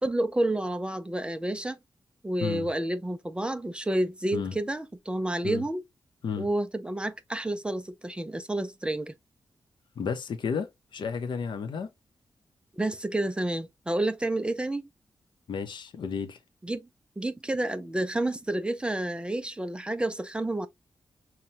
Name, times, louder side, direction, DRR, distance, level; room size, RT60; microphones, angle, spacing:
voice 1, 0.0-1.8 2.2-5.8 6.4-9.1 12.7-14.9 16.6-16.9 17.2-20.7, right 1 dB, 10° right, 0.4 m, -30 dB
voice 2, 10.0-11.9 15.5-16.4, left 6 dB, 75° left, 0.7 m, -32 dB
5.5 x 2.2 x 2.8 m
wide cardioid pair, 135°, 8 cm